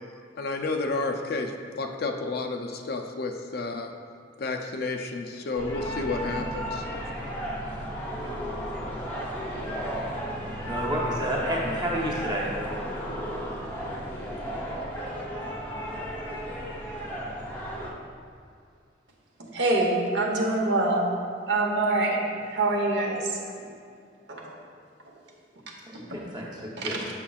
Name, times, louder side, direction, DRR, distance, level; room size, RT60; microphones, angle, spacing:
voice 1, 0.4-3.9 4.4-6.9, left 3 dB, 50° left, 4 dB, 0.4 m, -31 dB
sound 1, 5.5-17.9, equal, 10° left, 0.7 m, -34 dB
voice 2, 10.7-12.6 25.9-27.1, right 1 dB, 20° right, -3 dB, 0.8 m, -30 dB
voice 3, 19.4-21.1 21.5-22.2 22.5-23.4 24.3-24.5 26.8-27.0, right 2 dB, 70° right, -1 dB, 0.9 m, -25 dB
7.1 x 6.3 x 2.3 m, 2.3 s
head